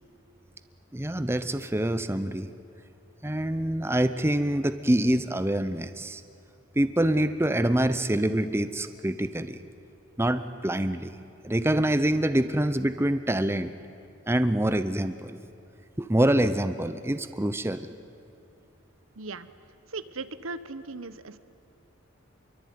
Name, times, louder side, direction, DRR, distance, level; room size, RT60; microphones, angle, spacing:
voice 1, 0.9-2.5 3.2-6.2 6.7-9.6 10.2-11.2 11.4-13.7 14.3-15.4 16.0-17.9, right 1 dB, 10° right, 11 dB, 0.7 m, -25 dB
voice 2, 19.2-19.5 19.9-21.4, right 3 dB, 75° right, 13 dB, 1.1 m, -38 dB
27.0 x 23.0 x 9.5 m, 2.8 s
head